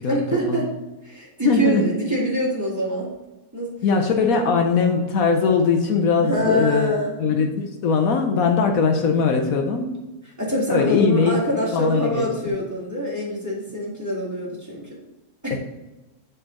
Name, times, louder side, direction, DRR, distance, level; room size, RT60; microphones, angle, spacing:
voice 1, 0.0-0.7 1.0-3.1 3.5-3.7 4.3-4.4 6.2-7.4 10.4-15.0 15.4-15.6, equal, 10° right, -6 dB, 1.8 m, -25 dB
voice 2, 1.4-1.8 3.8-6.9 7.2-9.9 10.7-11.4 11.7-12.3 15.5-15.6, left 5 dB, 75° left, 4 dB, 1.1 m, -20 dB
7.8 x 4.1 x 3.7 m, 1.1 s
omnidirectional pair, 1.6 m